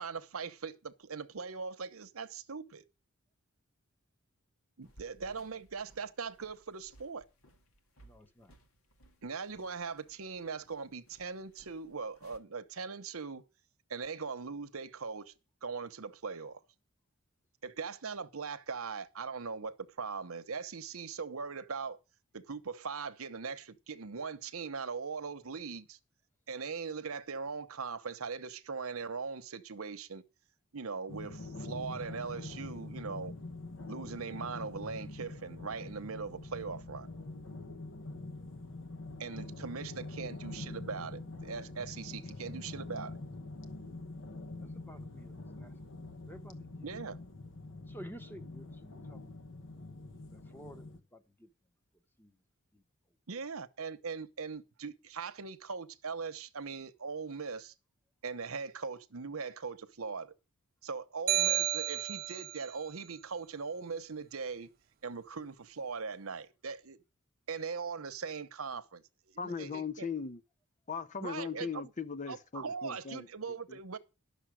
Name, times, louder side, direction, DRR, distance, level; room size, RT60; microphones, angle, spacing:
voice 1, 0.0-2.8 4.8-7.2 9.2-13.4 13.9-15.3 15.6-16.6 17.6-22.0 22.3-26.0 26.5-30.2 30.7-33.3 33.9-37.1 39.2-43.2 46.8-47.2 53.3-57.7 58.2-60.3 60.8-64.7 65.0-67.0 67.5-70.1 71.2-71.9 72.3-74.0, right 5 dB, 80° right, 1.0 m, -40 dB
sound 1, 4.8-12.4, right 1 dB, 90° left, 2.0 m, -62 dB
voice 2, 8.0-8.5 44.6-45.7 46.3-47.2 47.9-49.4 50.3-51.5 52.2-52.4 52.7-52.8, equal, 10° left, 1.0 m, -52 dB
sound 2, 31.1-51.0, left 2 dB, 65° left, 1.1 m, -45 dB
sound 3, 61.3-62.7, right 13 dB, 45° right, 0.5 m, -31 dB
voice 3, 69.4-70.4 70.9-73.3 73.7-73.8, left 5 dB, 35° left, 0.6 m, -38 dB
11.5 x 6.7 x 6.3 m
head